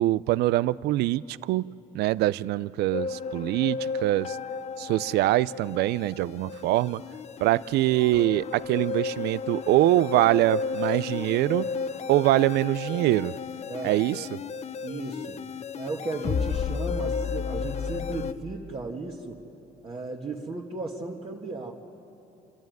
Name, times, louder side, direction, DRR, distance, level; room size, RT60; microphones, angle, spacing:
voice 1, 0.0-1.7 1.9-4.4 4.8-7.0 7.4-11.7 12.1-13.3 13.8-14.4, right 16 dB, 75° right, 19 dB, 0.4 m, -24 dB
sound 1, 2.9-18.3, left 5 dB, 40° left, 0.7 m, -33 dB
voice 2, 13.7-14.0 14.8-15.4 15.8-19.4 19.8-21.7, right 3 dB, 30° right, -3 dB, 1.7 m, -35 dB
30.0 x 13.0 x 9.2 m, 3.0 s
cardioid pair, 110°, 17 cm